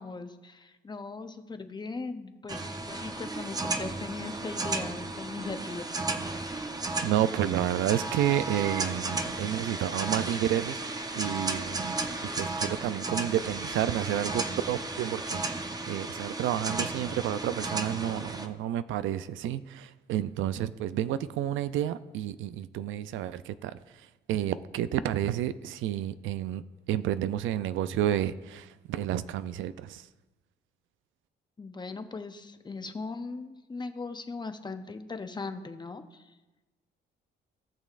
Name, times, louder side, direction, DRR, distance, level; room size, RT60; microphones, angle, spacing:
voice 1, 0.0-5.8 31.6-36.3, left 3 dB, 20° left, 8 dB, 0.7 m, -39 dB
sound 1, 2.5-18.5, right 2 dB, 20° right, 0.7 m, -34 dB
voice 2, 7.0-10.8 11.1-12.0 12.4-15.4 15.9-23.8 24.3-26.6 26.9-30.0, right 11 dB, 80° right, 14 dB, 0.4 m, -30 dB
17.0 x 6.2 x 2.5 m, 1.1 s
cardioid pair, 90°, 20 cm